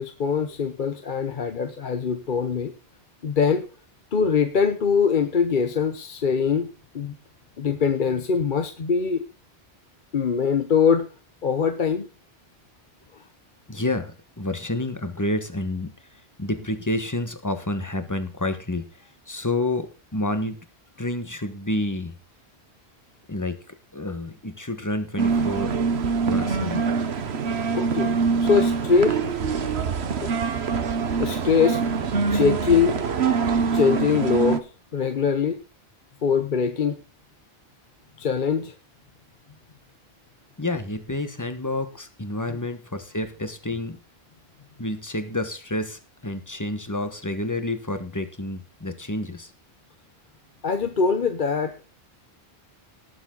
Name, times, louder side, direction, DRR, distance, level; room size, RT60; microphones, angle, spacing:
voice 1, 0.0-2.7 3.2-3.6 4.1-6.7 6.9-7.1 7.6-9.2 10.1-11.1 11.4-12.1 27.7-29.2 30.1-30.3 31.2-31.8 32.3-33.0 33.7-35.6 36.2-37.0 38.2-38.7 50.6-51.7, left 6 dB, 50° left, 8 dB, 1.0 m, -23 dB
voice 2, 13.7-15.9 16.4-18.9 19.3-20.6 21.0-22.1 23.3-25.8 26.3-26.8 40.6-44.0 44.8-49.5, left 1 dB, 15° left, 9 dB, 1.4 m, -29 dB
sound 1, 25.2-34.6, right 5 dB, 75° right, 1.3 m, -24 dB
18.5 x 7.2 x 3.9 m, 0.34 s
omnidirectional pair, 1.1 m